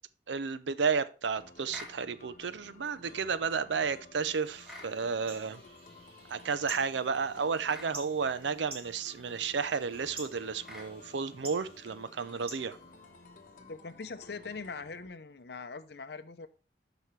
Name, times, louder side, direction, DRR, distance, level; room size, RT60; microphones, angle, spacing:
voice 1, 0.3-5.6 6.3-12.8, right 5 dB, 85° right, 0.6 m, -32 dB
sound 1, 1.4-15.1, left 3 dB, 45° left, 1.1 m, -54 dB
sound 2, 1.7-2.0 4.6-5.0 7.7-7.9 10.6-10.9, left 1 dB, 5° right, 1.6 m, -45 dB
sound 3, 4.2-13.5, right 2 dB, 30° right, 2.2 m, -50 dB
voice 2, 13.7-16.5, left 4 dB, 65° left, 0.6 m, -42 dB
12.5 x 5.0 x 3.2 m
head